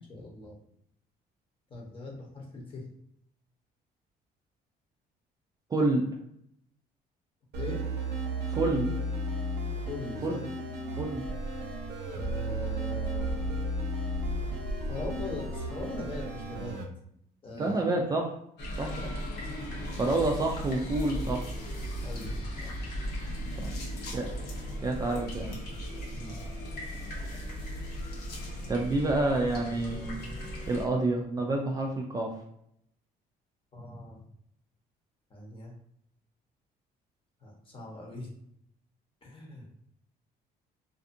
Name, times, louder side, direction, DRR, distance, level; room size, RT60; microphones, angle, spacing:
voice 1, 0.1-0.6 1.7-2.8 7.6-7.8 9.9-10.4 12.1-13.5 14.9-16.7 17.4-17.8 19.0-19.2 21.2-21.4 22.0-22.4 22.6-22.7 26.1-26.4 33.7-34.2 35.3-35.7 37.4-38.3 39.2-39.6, left 2 dB, 30° left, -1 dB, 0.9 m, -40 dB
voice 2, 5.7-6.0 8.5-8.9 10.2-10.4 11.0-11.2 17.6-18.3 18.8-18.9 20.0-21.4 23.6-23.7 24.1-24.3 24.8-25.6 28.7-30.2 30.7-32.3, right 2 dB, 20° right, 0 dB, 0.4 m, -28 dB
sound 1, 7.5-16.8, right 1 dB, 85° right, 0.6 m, -34 dB
sound 2, 11.2-16.7, right 1 dB, 55° left, 1.2 m, -39 dB
sound 3, 18.6-30.8, equal, 75° left, 0.9 m, -37 dB
2.6 x 2.4 x 2.5 m, 0.72 s
cardioid pair, 110°, 17 cm